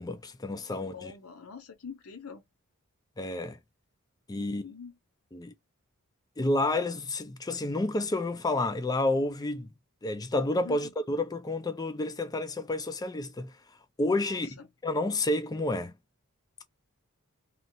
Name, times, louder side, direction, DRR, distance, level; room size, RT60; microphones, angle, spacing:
voice 1, 0.0-1.1 3.2-3.6 4.3-4.6 5.3-5.5 6.4-9.7 10.0-13.5 14.0-15.9, left 2 dB, 15° left, 0.4 m, -30 dB
voice 2, 0.7-2.4 4.3-5.0 10.6-10.9 14.2-14.7, left 5 dB, 75° left, 0.9 m, -45 dB
3.1 x 2.4 x 2.7 m
head